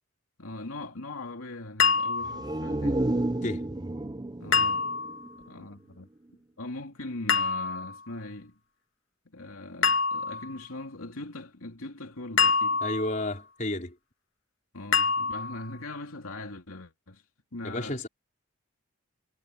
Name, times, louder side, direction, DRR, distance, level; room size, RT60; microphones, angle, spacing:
voice 1, 0.4-3.1 4.4-4.9 5.4-6.1 6.6-8.6 9.3-12.8 14.7-17.2 17.5-18.0, left 2 dB, 85° left, 2.9 m, -40 dB
sound 1, 1.8-2.5 4.5-5.2 7.3-8.0 9.8-10.5 12.4-13.3 14.9-15.7, left 5 dB, 70° left, 1.6 m, -26 dB
sound 2, 2.2-5.9 6.3-6.4, right 1 dB, 20° right, 0.5 m, -31 dB
voice 2, 12.8-13.9 17.6-18.1, left 1 dB, 35° left, 4.3 m, -31 dB
head